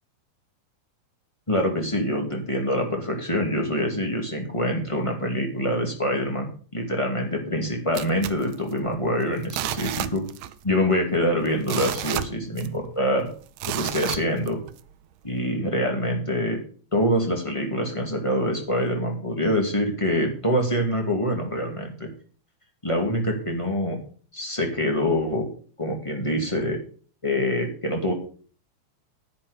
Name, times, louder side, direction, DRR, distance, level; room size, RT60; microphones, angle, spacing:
voice 1, 1.5-10.2 10.6-13.3 13.7-14.6 15.2-16.6 16.9-22.1 22.8-24.0 24.3-25.5 25.8-26.8 27.2-28.1, equal, 10° left, 1 dB, 2.0 m, -25 dB
sound 1, 7.9-9.1 9.4-10.6 10.9-11.0 11.5-12.9 13.6-14.8 15.3-15.4, right 13 dB, 75° right, 1.8 m, -31 dB
10.0 x 9.6 x 5.1 m, 0.42 s
omnidirectional pair, 3.3 m